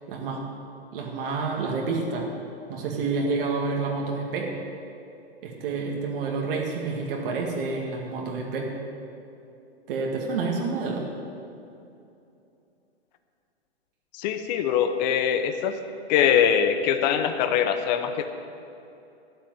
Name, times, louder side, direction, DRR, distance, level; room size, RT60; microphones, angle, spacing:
voice 1, 0.1-0.5 0.9-2.3 2.7-4.5 5.4-8.7 9.9-11.1, right 4 dB, 55° right, -1 dB, 2.1 m, -29 dB
voice 2, 14.1-15.7 16.1-18.3, left 8 dB, 40° left, 8 dB, 1.0 m, -23 dB
12.5 x 7.5 x 9.2 m, 2.7 s
hypercardioid pair, 130°, 33 cm